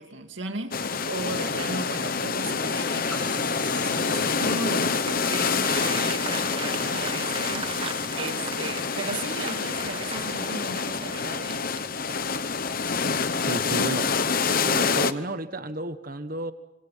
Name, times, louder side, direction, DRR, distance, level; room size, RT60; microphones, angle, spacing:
voice 1, 0.0-11.6, right 3 dB, 65° right, 6 dB, 2.4 m, -36 dB
sound 1, 0.7-15.1, left 5 dB, 45° left, 0.9 m, -27 dB
sound 2, 3.1-11.1, right 4 dB, 5° left, 4.7 m, -48 dB
Applause, 4.3-12.4, right 4 dB, 25° right, 1.1 m, -39 dB
voice 2, 13.5-14.1 14.6-16.5, right 2 dB, 45° right, 10 dB, 1.4 m, -32 dB
27.5 x 26.0 x 5.8 m, 0.92 s
head